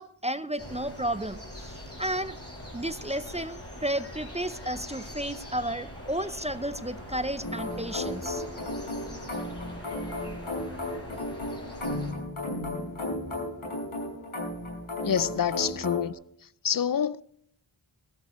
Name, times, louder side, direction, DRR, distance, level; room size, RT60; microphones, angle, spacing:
voice 1, 0.0-2.4 2.7-8.4, right 1 dB, 15° right, 0.6 m, -32 dB
sound 1, 0.6-12.1, left 1 dB, 30° left, 5.9 m, -42 dB
sound 2, 7.4-16.1, left 1 dB, 75° left, 5.8 m, -34 dB
voice 2, 15.0-16.1 16.6-17.2, left 8 dB, 45° left, 0.5 m, -27 dB
14.5 x 14.5 x 3.1 m
wide cardioid pair, 40°, 49 cm